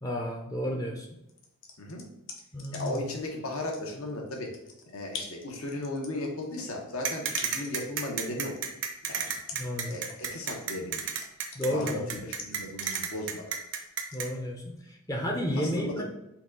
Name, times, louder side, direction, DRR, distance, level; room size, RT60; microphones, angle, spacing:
voice 1, 0.0-1.1 2.5-3.0 9.5-10.0 11.5-12.2 14.1-16.0, equal, 15° left, 1 dB, 0.5 m, -32 dB
sound 1, 1.3-3.2 3.5-14.3, left 4 dB, 60° left, 0.7 m, -45 dB
voice 2, 2.7-4.5 4.9-8.6 9.1-9.3 9.8-11.1 11.6-13.6 15.6-16.0, left 1 dB, 75° left, 0 dB, 1.0 m, -36 dB
sound 2, 7.0-14.3, right 7 dB, 55° right, 0.6 m, -31 dB
5.9 x 2.3 x 3.8 m, 0.85 s
head